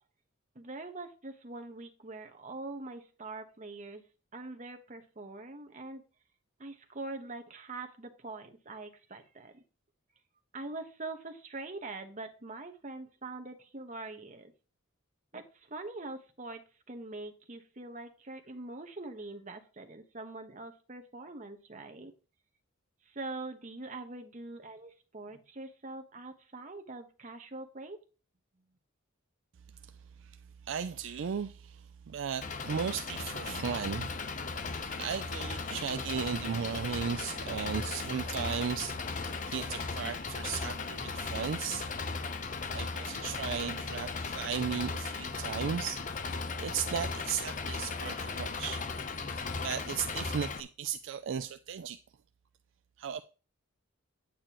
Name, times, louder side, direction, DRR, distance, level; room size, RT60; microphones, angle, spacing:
voice 1, 0.5-4.0 4.3-6.0 6.6-9.6 10.5-14.5 15.3-16.6 16.9-22.1 23.1-28.0, right 2 dB, 35° right, 1.0 m, -43 dB
voice 2, 30.6-34.2 34.8-41.9 42.7-46.0 46.6-48.8 49.3-52.0 53.0-53.2, right 7 dB, 60° right, 0.4 m, -36 dB
Engine, 32.4-50.6, left 4 dB, 35° left, 0.6 m, -37 dB
8.8 x 8.7 x 3.0 m
head